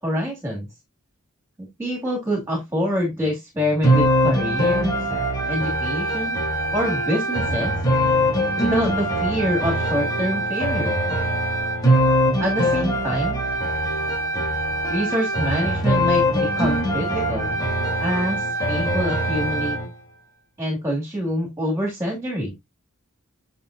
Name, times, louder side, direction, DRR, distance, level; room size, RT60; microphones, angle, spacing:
voice 1, 0.0-0.7 1.8-5.1 5.5-6.4 6.7-7.8 8.6-11.0 12.4-13.4 14.9-17.6 18.0-19.8 20.6-22.5, equal, 10° right, -1 dB, 2.4 m, -26 dB
sound 1, 3.8-19.9, equal, 20° left, 3.7 m, -22 dB
9.1 x 6.0 x 2.6 m, 0.18 s
head